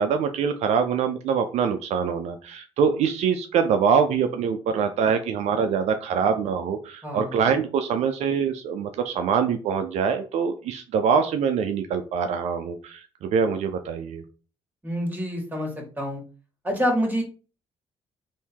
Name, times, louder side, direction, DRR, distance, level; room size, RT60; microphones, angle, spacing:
voice 1, 0.0-14.2, right 6 dB, 75° right, 7 dB, 0.5 m, -24 dB
voice 2, 14.8-16.2 16.6-17.2, equal, 15° right, 0 dB, 2.1 m, -27 dB
3.5 x 2.7 x 4.5 m, 0.37 s
supercardioid pair, 70°, 12 cm